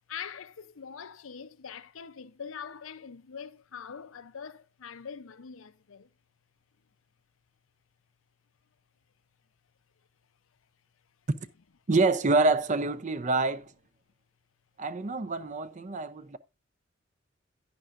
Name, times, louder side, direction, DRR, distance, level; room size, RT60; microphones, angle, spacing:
voice 1, 0.1-6.1, left 7 dB, 75° left, 0.6 m, -43 dB
voice 2, 11.9-13.7 14.8-16.4, right 3 dB, 35° right, 0.6 m, -26 dB
10.5 x 10.0 x 2.5 m
head